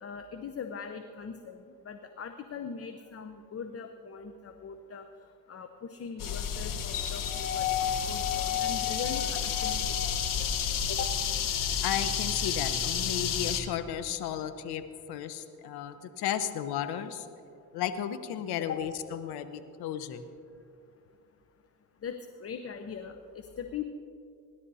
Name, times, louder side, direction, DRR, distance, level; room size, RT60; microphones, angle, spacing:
voice 1, 0.0-5.1 5.5-10.5 10.9-11.2 18.6-18.8 22.0-23.8, left 6 dB, 40° left, 7 dB, 0.8 m, -41 dB
sound 1, 6.2-13.6, left 8 dB, 55° left, 1.2 m, -30 dB
voice 2, 11.8-14.8 15.1-17.3 17.7-20.3, left 10 dB, 80° left, 10 dB, 1.0 m, -34 dB
25.0 x 11.5 x 2.8 m, 2.5 s
supercardioid pair, 75°, 38 cm